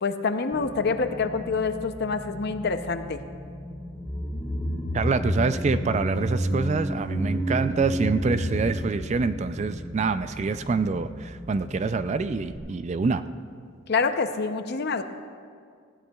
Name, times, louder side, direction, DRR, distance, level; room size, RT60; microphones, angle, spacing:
voice 1, 0.0-3.2 13.9-15.0, left 4 dB, 50° left, 9 dB, 0.6 m, -26 dB
sound 1, 0.5-12.6, left 1 dB, ahead, 2.5 m, -41 dB
sound 2, 3.9-10.3 10.6-10.7, equal, 25° left, 2.5 m, -30 dB
voice 2, 4.9-13.2, right 4 dB, 35° right, 12 dB, 0.3 m, -26 dB
19.5 x 16.0 x 2.3 m, 2.2 s
head